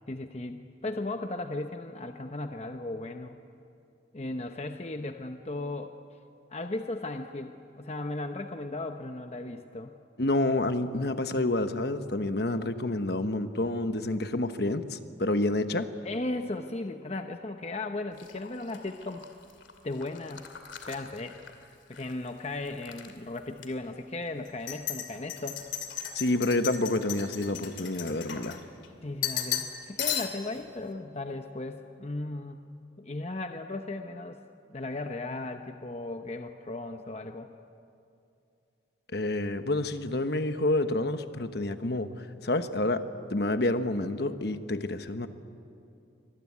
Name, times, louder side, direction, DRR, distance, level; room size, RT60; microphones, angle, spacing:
voice 1, 0.1-3.4 4.1-5.9 6.5-9.9 16.0-19.2 19.8-20.4 20.9-21.5 21.9-25.6 29.0-32.6 33.0-34.4 34.7-37.5, left 2 dB, 35° left, 6 dB, 0.8 m, -36 dB
voice 2, 10.2-15.9 26.1-28.6 39.1-43.0 43.3-45.3, left 2 dB, 55° left, 9 dB, 1.1 m, -28 dB
sound 1, 18.2-22.1 22.4-23.1 23.6-23.7 24.5-28.9 29.2-29.7 30.0-30.6, left 10 dB, 80° left, 2.6 m, -36 dB
25.0 x 20.5 x 9.6 m, 2.6 s
head